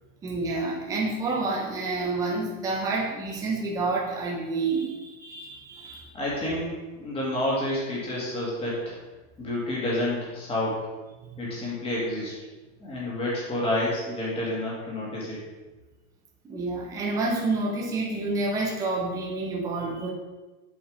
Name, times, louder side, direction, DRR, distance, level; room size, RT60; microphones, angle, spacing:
voice 1, 0.2-6.1 16.4-20.1, right 3 dB, 10° right, -2 dB, 0.7 m, -29 dB
voice 2, 6.1-8.9 9.4-10.8 11.4-12.3 12.8-15.4, left 1 dB, 15° left, -5 dB, 2.2 m, -29 dB
7.3 x 5.3 x 5.1 m, 1.2 s
supercardioid pair, 170°, 43 cm